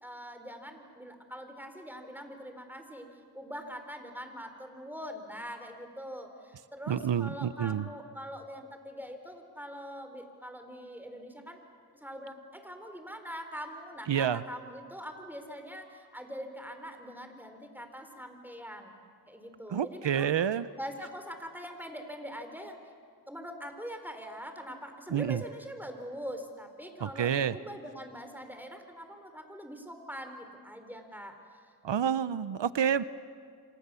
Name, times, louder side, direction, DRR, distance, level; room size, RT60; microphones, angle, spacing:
voice 1, 0.0-3.1 3.3-11.6 12.0-19.0 19.3-20.3 20.8-22.8 23.3-31.6, equal, 5° right, 6 dB, 4.0 m, -43 dB
voice 2, 6.9-7.9 14.1-14.4 19.7-20.7 25.1-25.4 27.0-27.6 31.8-33.0, right 8 dB, 90° right, 15 dB, 0.7 m, -28 dB
28.0 x 25.5 x 7.0 m, 2.1 s
cardioid pair, 40°, 42 cm